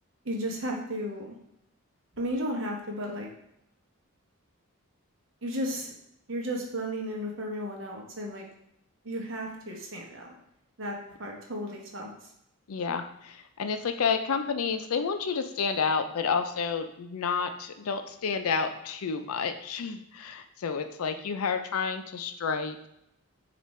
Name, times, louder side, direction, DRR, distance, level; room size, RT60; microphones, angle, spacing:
voice 1, 0.2-1.4 2.2-3.3 5.4-5.9 6.3-8.4 9.0-10.3 10.8-12.1, equal, 60° right, 0 dB, 1.0 m, -34 dB
voice 2, 12.7-22.8, left 5 dB, 85° left, 8 dB, 0.5 m, -30 dB
6.5 x 2.5 x 3.2 m, 0.78 s
head